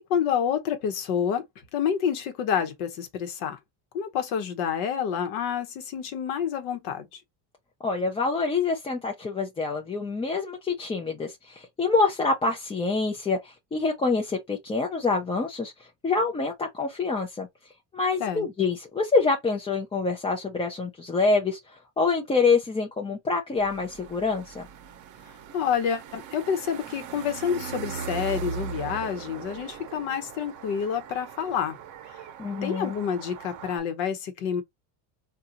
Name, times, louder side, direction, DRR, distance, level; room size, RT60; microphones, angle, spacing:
voice 1, 0.1-1.5 1.7-3.6 3.9-7.2 18.2-18.5 25.5-31.8 32.1-32.2 32.6-34.6, left 8 dB, 85° left, 1.0 m, -28 dB
voice 2, 7.8-15.7 16.0-17.5 17.9-21.6 22.0-24.7 32.4-33.0, left 4 dB, 15° left, 0.4 m, -26 dB
sound 1, 23.6-33.8, right 7 dB, 45° right, 0.7 m, -39 dB
3.8 x 2.4 x 2.8 m
cardioid pair, 125°, 44 cm